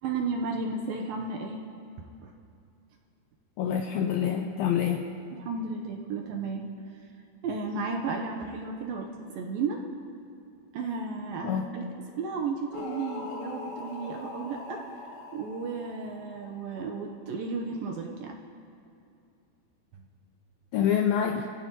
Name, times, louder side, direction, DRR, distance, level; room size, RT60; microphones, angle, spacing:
voice 1, 0.0-1.6 2.2-2.3 5.3-6.7 7.4-9.8 10.7-11.9 12.2-15.0 15.3-18.4 19.9-20.0, right 4 dB, 75° right, 1 dB, 2.3 m, -33 dB
voice 2, 3.6-5.0 11.4-11.6 20.7-21.5, left 8 dB, 85° left, 3 dB, 2.1 m, -26 dB
sound 1, 12.7-17.0, left 3 dB, 60° left, 2.8 m, -42 dB
29.5 x 16.5 x 3.0 m, 2.6 s
omnidirectional pair, 4.9 m